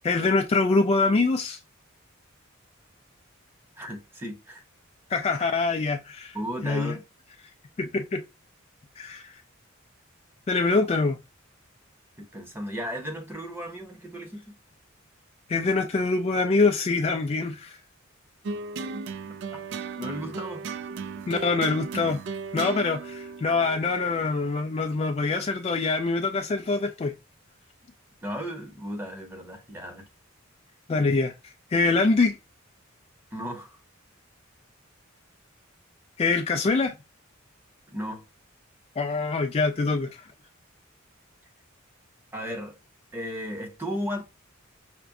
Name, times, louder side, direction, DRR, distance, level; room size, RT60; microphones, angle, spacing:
voice 1, 0.0-1.6 5.1-6.4 6.6-7.0 7.8-8.2 9.0-9.3 10.5-11.2 15.5-17.8 21.3-22.2 22.5-27.1 30.9-31.3 31.7-32.4 36.2-36.9 39.0-40.1, left 3 dB, 30° left, 0.3 m, -24 dB
voice 2, 3.8-4.6 6.3-7.0 12.2-14.4 19.5-20.7 28.2-30.1 33.3-33.8 37.9-38.2 42.3-42.8 43.1-44.2, equal, 10° right, 0.8 m, -35 dB
sound 1, 18.4-24.9, right 4 dB, 60° right, 0.3 m, -36 dB
5.8 x 2.1 x 2.5 m
head